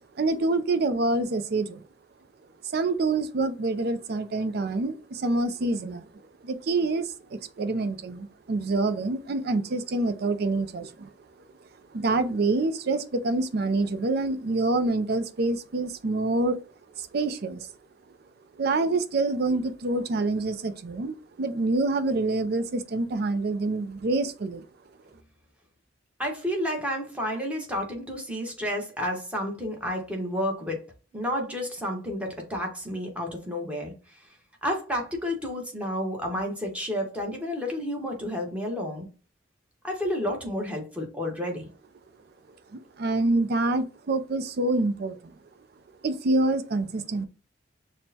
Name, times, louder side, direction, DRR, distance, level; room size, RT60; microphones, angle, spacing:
voice 1, 0.2-1.8 2.6-6.1 6.4-11.1 11.9-16.6 17.0-17.7 18.5-24.6 42.7-45.4 46.0-47.2, right 2 dB, 60° right, 0.5 m, -26 dB
voice 2, 26.2-30.8 31.1-33.9 34.6-39.1 39.8-41.7, equal, 5° right, 1.0 m, -30 dB
6.2 x 2.1 x 2.7 m
head